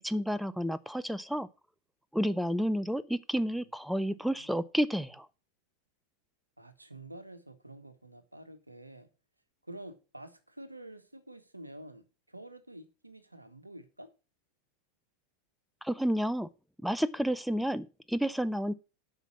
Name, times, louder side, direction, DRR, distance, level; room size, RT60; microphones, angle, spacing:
voice 1, 0.0-1.5 2.1-5.3 15.8-16.5 16.8-18.7, equal, ahead, 0.5 m, -30 dB
voice 2, 6.6-9.1 9.6-14.1, right 1 dB, 85° right, 1.1 m, -49 dB
8.1 x 5.7 x 7.2 m
figure-of-eight pair, 85°, 0 cm